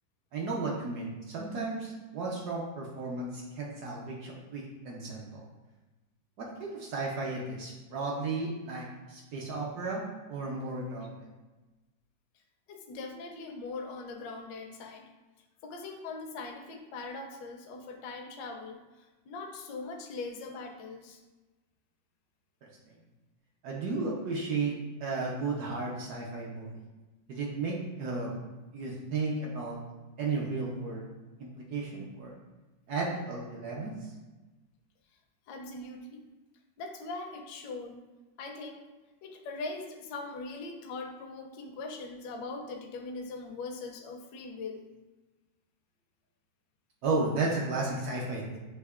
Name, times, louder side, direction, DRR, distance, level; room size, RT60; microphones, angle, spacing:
voice 1, 0.3-5.4 6.4-10.0 10.3-11.3 23.6-24.7 25.0-26.7 27.3-28.4 28.7-29.8 30.2-31.1 31.4-32.3 32.9-33.9 47.0-48.6, right 3 dB, 65° right, -3 dB, 1.0 m, -34 dB
voice 2, 12.7-15.0 15.6-18.8 19.3-21.2 35.5-36.2 36.8-38.0 38.4-38.8 39.2-44.9, left 3 dB, 70° left, 2 dB, 1.2 m, -41 dB
6.3 x 2.8 x 2.4 m, 1.2 s
omnidirectional pair, 2.1 m